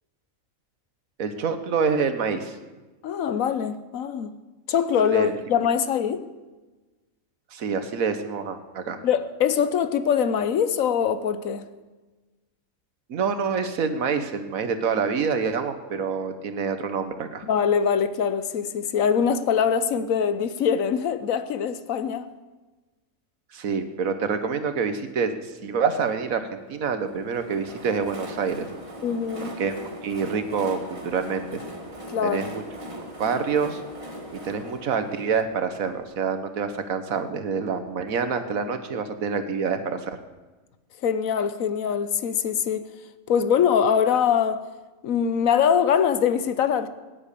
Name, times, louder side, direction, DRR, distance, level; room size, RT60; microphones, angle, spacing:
voice 1, 1.2-2.5 5.1-5.3 7.5-9.0 13.1-17.4 23.5-28.7 29.6-29.7 30.0-31.6 32.2-32.6 32.9-33.8 34.3-40.1, right 5 dB, 75° right, 1.6 m, -27 dB
voice 2, 3.0-4.3 4.7-6.3 9.0-11.7 17.4-22.3 29.0-29.5 32.1-32.5 41.0-42.8 43.3-44.6 45.0-46.9, left 7 dB, 75° left, 1.3 m, -23 dB
Train, 27.0-36.7, equal, 25° right, 1.9 m, -40 dB
18.0 x 9.7 x 8.4 m
omnidirectional pair, 1.4 m